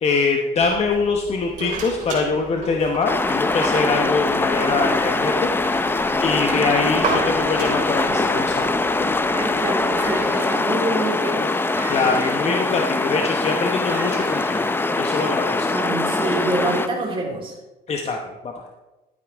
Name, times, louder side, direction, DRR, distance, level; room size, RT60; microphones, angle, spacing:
voice 1, 0.0-5.5 6.2-9.1 11.9-15.7 17.9-18.2 18.4-18.7, left 4 dB, 40° left, 2 dB, 1.0 m, -23 dB
sound 1, 0.5-10.3, right 3 dB, 50° right, 3.9 m, -34 dB
sound 2, 3.0-16.9, left 2 dB, 15° left, 0.6 m, -22 dB
sound 3, 7.8-8.8 9.1-9.5 9.8-15.8 16.6-16.7, right 2 dB, 10° right, 1.0 m, -39 dB
voice 2, 9.3-11.5 15.0-15.1 15.7-17.5, right 2 dB, 30° right, -3 dB, 3.7 m, -26 dB
12.5 x 9.1 x 3.5 m, 1.1 s
cardioid pair, 110°, 17 cm